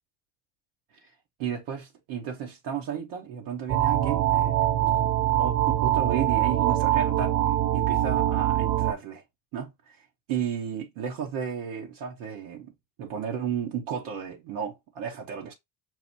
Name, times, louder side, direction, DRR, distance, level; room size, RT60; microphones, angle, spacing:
voice 1, 1.4-7.4 7.7-9.2 9.5-12.7 13.0-15.5, right 8 dB, 80° right, 0.9 m, -33 dB
sound 1, 3.7-8.9, right 13 dB, 40° right, 0.4 m, -23 dB
5.8 x 2.1 x 2.7 m
hypercardioid pair, 55°, 47 cm